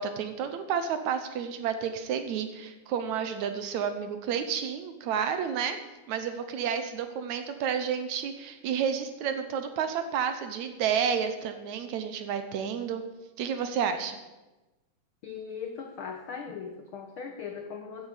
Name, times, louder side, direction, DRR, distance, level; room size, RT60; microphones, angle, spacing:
voice 1, 0.0-5.8 6.1-13.0 13.4-14.2, right 7 dB, 70° right, 8 dB, 2.1 m, -30 dB
voice 2, 15.2-18.1, left 6 dB, 80° left, 4 dB, 1.1 m, -39 dB
15.5 x 10.0 x 5.1 m, 1.1 s
omnidirectional pair, 3.8 m